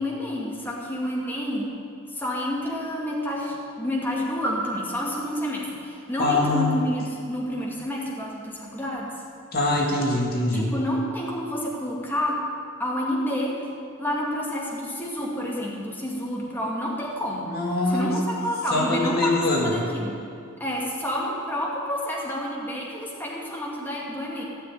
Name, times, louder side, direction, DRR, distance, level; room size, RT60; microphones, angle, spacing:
voice 1, 0.0-1.7 2.1-9.1 10.5-12.4 12.8-13.6 14.0-17.5 17.9-19.3 19.6-20.2 20.6-24.4, equal, 10° left, -4 dB, 2.2 m, -29 dB
voice 2, 6.2-6.7 9.5-10.7 17.4-18.2 18.7-19.7, left 2 dB, 45° left, -1 dB, 1.9 m, -23 dB
16.0 x 6.8 x 9.8 m, 2.6 s
head